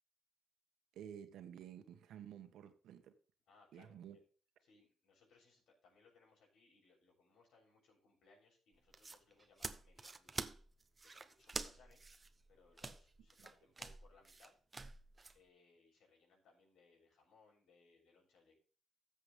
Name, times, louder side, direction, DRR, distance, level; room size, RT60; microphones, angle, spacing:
voice 1, 0.9-3.1 3.7-4.2 13.4-13.5, right 9 dB, 80° right, 1.7 m, -52 dB
voice 2, 3.5-4.2 4.6-10.5 11.0-12.1 12.5-14.6 15.3-18.6, left 4 dB, 75° left, 6.6 m, -69 dB
sound 1, 8.7-15.4, right 3 dB, 25° right, 1.0 m, -48 dB
13.5 x 7.6 x 3.5 m
cardioid pair, 90°, 0 cm